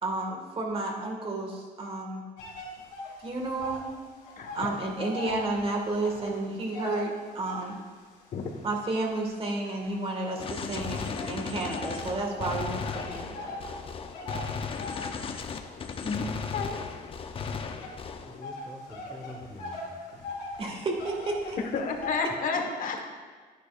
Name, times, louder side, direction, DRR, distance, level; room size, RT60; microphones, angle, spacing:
voice 1, 0.0-2.2 3.2-3.8 4.5-7.8 8.6-12.8 13.1-13.5 20.6-21.6, right 2 dB, 35° right, 1 dB, 1.8 m, -31 dB
sound 1, 2.4-3.9 4.2-7.9 8.5-10.5 11.1-22.2, left 2 dB, 85° left, 2.2 m, -41 dB
voice 2, 4.4-4.7 8.3-8.6 16.0-16.3 16.5-16.8 21.6-23.1, left 4 dB, 55° left, 3 dB, 1.3 m, -31 dB
Gunshot gunfire, 10.4-18.4, left 5 dB, 35° left, 0.6 m, -36 dB
voice 3, 18.2-20.4 22.5-23.1, left 1 dB, 5° left, 1 dB, 1.3 m, -45 dB
10.5 x 10.0 x 2.5 m, 1.5 s
cardioid pair, 110°, 17 cm